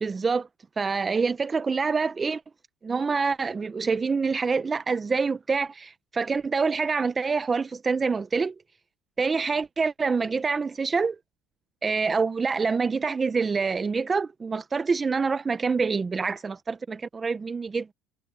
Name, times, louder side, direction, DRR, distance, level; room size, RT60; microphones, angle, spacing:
voice 1, 0.0-0.5 0.8-2.4 2.8-8.5 9.2-11.2 11.8-17.9, right 4 dB, 15° right, 0.6 m, -26 dB
cardioid pair, 150°, 0 cm